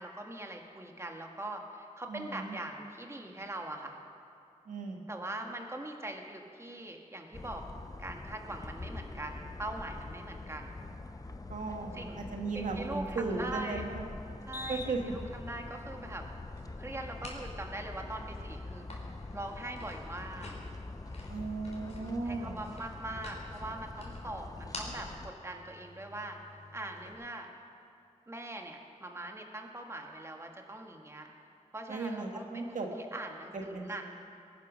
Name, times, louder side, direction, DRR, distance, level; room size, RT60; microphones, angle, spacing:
voice 1, 0.0-4.0 5.1-7.6 8.0-10.8 11.9-12.2 12.5-13.8 14.4-16.3 16.8-18.9 19.3-20.5 22.2-26.4 26.7-27.5 28.3-31.3 31.7-32.7 33.0-34.0, right 1 dB, 20° right, 2 dB, 1.6 m, -42 dB
voice 2, 2.1-2.6 4.6-5.1 11.5-14.2 14.7-15.0 21.3-22.6 31.9-32.9 33.5-33.9, right 3 dB, 80° right, 2 dB, 1.7 m, -36 dB
sound 1, 7.3-25.3, left 2 dB, 25° left, 0.8 m, -44 dB
sound 2, 14.6-27.1, left 2 dB, 55° left, 3.7 m, -51 dB
21.5 x 10.0 x 6.3 m, 2.5 s
wide cardioid pair, 90°, 13 cm